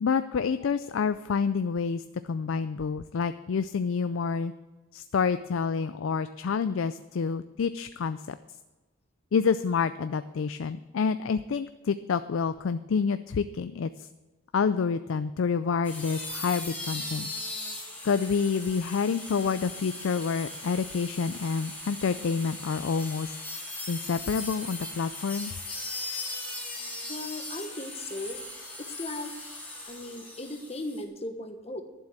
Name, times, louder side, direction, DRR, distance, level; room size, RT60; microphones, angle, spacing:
voice 1, 0.0-4.5 4.9-8.4 9.3-14.1 14.5-17.3 18.0-23.4 23.9-25.5, left 5 dB, 65° left, 12 dB, 0.4 m, -28 dB
sound 1, 15.8-31.0, left 2 dB, 10° left, 2.3 m, -39 dB
voice 2, 27.1-28.4 28.8-29.3 29.8-31.8, left 1 dB, 30° left, 6 dB, 1.2 m, -37 dB
11.5 x 7.5 x 7.3 m, 1.2 s
head